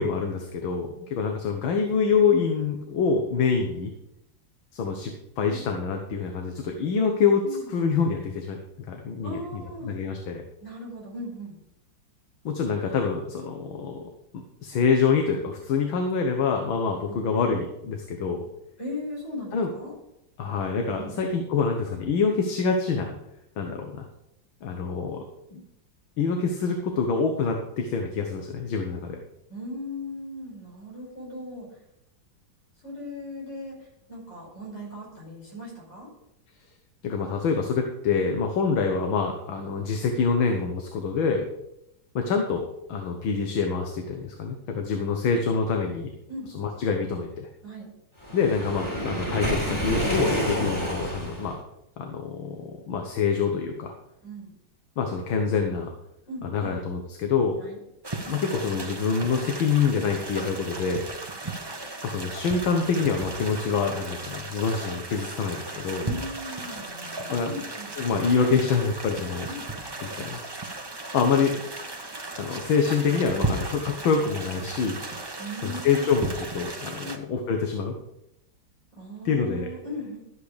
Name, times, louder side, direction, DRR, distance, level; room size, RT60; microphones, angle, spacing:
voice 1, 0.0-3.9 4.7-7.4 7.7-8.6 8.9-10.4 12.5-14.0 14.3-18.4 19.5-19.7 20.4-23.1 23.6-24.1 24.6-25.2 25.5-25.6 26.2-29.2 37.0-41.5 42.2-46.1 46.5-47.5 48.3-51.6 52.0-53.9 55.0-55.9 56.4-57.6 58.3-61.1 62.0-66.0 67.3-67.5 68.0-69.5 70.0-70.4 71.1-71.5 72.4-75.0 75.6-78.0 79.3-79.7, left 5 dB, 75° left, 3 dB, 1.9 m, -26 dB
voice 2, 9.2-9.9 10.6-11.5 17.1-17.5 18.8-19.9 21.0-21.2 29.5-31.7 32.8-33.8 34.1-36.1 38.2-38.3 46.3-46.5 47.6-47.9 54.2-54.6 56.3-56.8 57.6-57.8 66.0-67.9 69.5-69.7 75.4-76.3 77.0-77.2 78.9-80.2, left 1 dB, 60° left, -3 dB, 5.9 m, -38 dB
Waves surf, 48.2-51.5, equal, 15° left, 4.2 m, -28 dB
sound 1, 58.0-77.2, right 2 dB, 20° right, 0.6 m, -36 dB
12.5 x 8.4 x 5.0 m, 0.84 s
omnidirectional pair, 2.2 m